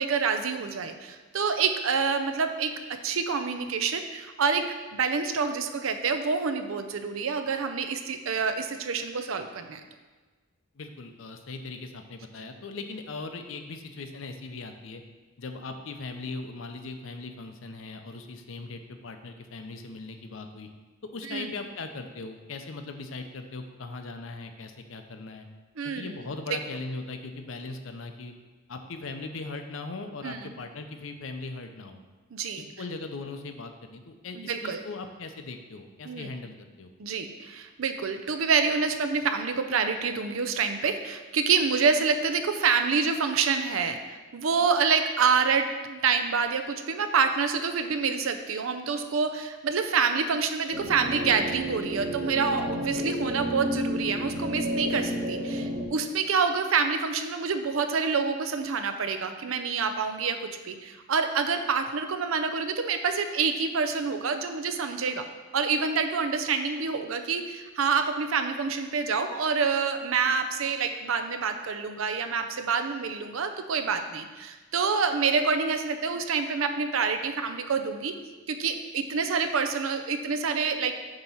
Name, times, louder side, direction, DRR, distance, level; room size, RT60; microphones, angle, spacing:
voice 1, 0.0-2.7 3.0-4.6 4.9-9.8 21.2-21.5 25.8-26.1 30.2-30.5 32.3-32.6 34.4-34.8 36.1-36.3 37.0-60.4 60.6-65.2 65.5-78.1 78.5-81.0, right 5 dB, 80° right, 7 dB, 0.5 m, -27 dB
voice 2, 10.7-15.0 15.4-20.7 21.1-25.5 25.8-28.3 28.7-32.0 32.8-36.9 52.8-53.1, left 3 dB, 70° left, 6 dB, 0.6 m, -39 dB
sound 1, 50.7-55.9, equal, 45° right, 1.6 m, -31 dB
7.6 x 3.0 x 5.6 m, 1.3 s
head